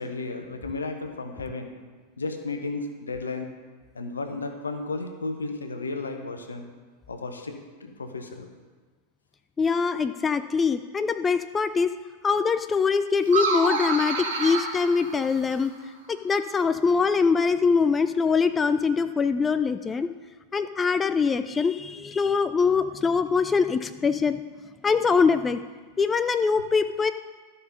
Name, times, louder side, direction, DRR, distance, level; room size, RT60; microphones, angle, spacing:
voice 1, 0.0-1.7 2.2-3.5 3.9-6.7 7.1-8.5, left 3 dB, 75° left, 6 dB, 1.0 m, -33 dB
voice 2, 9.6-11.9 12.2-15.7 16.1-20.1 20.5-24.4 24.8-25.6 26.0-27.1, left 5 dB, 15° left, 11 dB, 0.3 m, -23 dB
sound 1, 13.2-15.7, right 3 dB, 60° right, 1.5 m, -28 dB
12.5 x 5.6 x 5.5 m, 1.4 s
figure-of-eight pair, 90°, 0 cm